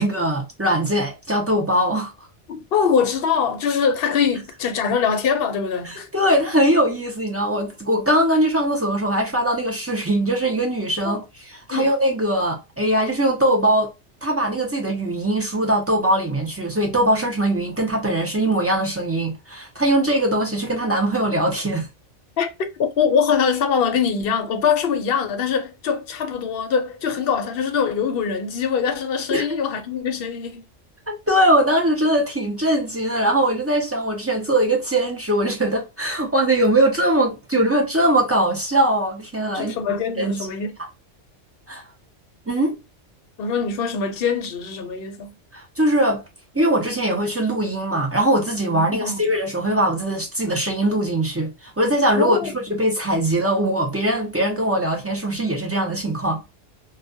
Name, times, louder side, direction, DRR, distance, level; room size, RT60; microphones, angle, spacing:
voice 1, 0.0-2.1 5.8-13.9 14.2-21.9 29.3-29.6 31.1-39.8 40.2-40.5 41.7-41.8 42.5-42.8 45.5-46.2 46.5-56.4, right 1 dB, 20° right, 0.4 m, -21 dB
voice 2, 2.5-6.1 11.0-11.2 11.7-11.9 22.4-30.6 39.5-40.7 43.4-45.3 48.7-49.2 52.1-52.5, left 6 dB, 60° left, 0.7 m, -23 dB
2.3 x 2.2 x 2.5 m
omnidirectional pair, 1.2 m